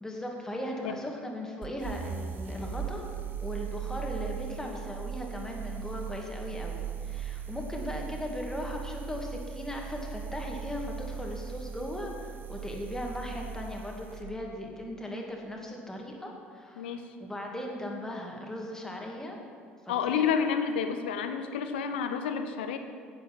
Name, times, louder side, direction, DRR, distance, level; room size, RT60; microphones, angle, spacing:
voice 1, 0.0-3.1 3.4-19.4 20.1-20.3, left 1 dB, 10° left, 0 dB, 2.2 m, -38 dB
sound 1, 1.6-14.3, right 7 dB, 35° right, 1.0 m, -38 dB
voice 2, 16.8-17.1 19.9-22.8, left 7 dB, 65° left, 8 dB, 0.8 m, -30 dB
10.0 x 9.2 x 6.0 m, 2.2 s
figure-of-eight pair, 60°, 6 cm